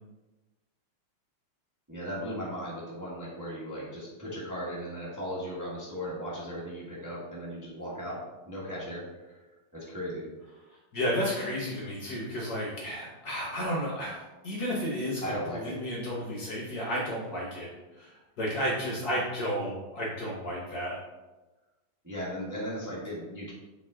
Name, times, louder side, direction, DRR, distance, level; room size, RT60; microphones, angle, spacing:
voice 1, 1.9-8.2 8.4-9.4 9.7-10.2 15.2-15.7 22.0-23.5, equal, 10° right, -7 dB, 1.3 m, -37 dB
voice 2, 10.9-14.2 14.4-15.2 15.5-21.0, equal, 50° left, -4 dB, 1.5 m, -32 dB
7.2 x 3.6 x 3.7 m, 1.1 s
omnidirectional pair, 2.3 m